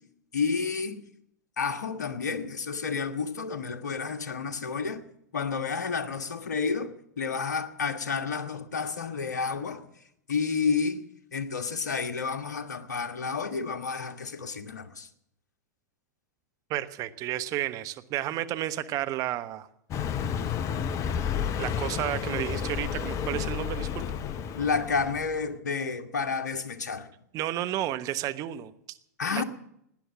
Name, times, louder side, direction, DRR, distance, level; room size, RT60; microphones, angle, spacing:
voice 1, 0.3-1.0 1.6-5.0 5.3-9.8 10.3-11.0 11.3-15.1 24.5-27.1 29.2-29.4, left 5 dB, 75° left, 1.5 m, -30 dB
voice 2, 16.7-19.7 21.6-24.0 27.3-29.0 29.3-29.4, right 13 dB, 40° right, 1.2 m, -32 dB
Car passing by, 19.9-25.4, left 8 dB, 35° left, 1.0 m, -31 dB
18.0 x 10.0 x 7.5 m
hypercardioid pair, 100°, 9 cm